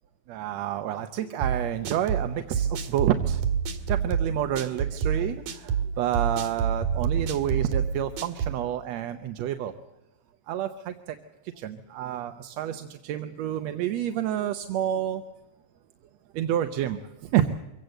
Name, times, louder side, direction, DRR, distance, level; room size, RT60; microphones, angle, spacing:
voice 1, 0.3-3.4 3.9-9.7 10.5-11.2 11.6-15.2 16.3-17.5, right 11 dB, 70° right, 8 dB, 1.9 m, -29 dB
sound 1, 1.4-8.6, right 7 dB, 85° right, 3.4 m, -27 dB
24.0 x 17.0 x 7.9 m, 1.0 s
omnidirectional pair, 3.4 m